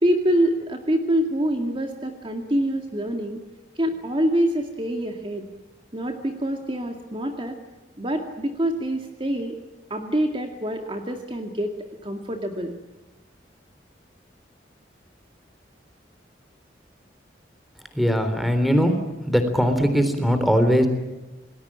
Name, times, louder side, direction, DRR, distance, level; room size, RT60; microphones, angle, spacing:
voice 1, 0.0-3.4 3.8-5.5 5.9-7.6 8.0-9.6 9.9-11.7 12.0-12.8, right 1 dB, 30° right, 4 dB, 2.2 m, -25 dB
voice 2, 18.0-19.0 19.3-20.9, equal, ahead, 8 dB, 3.6 m, -20 dB
28.5 x 20.0 x 8.8 m, 1.1 s
head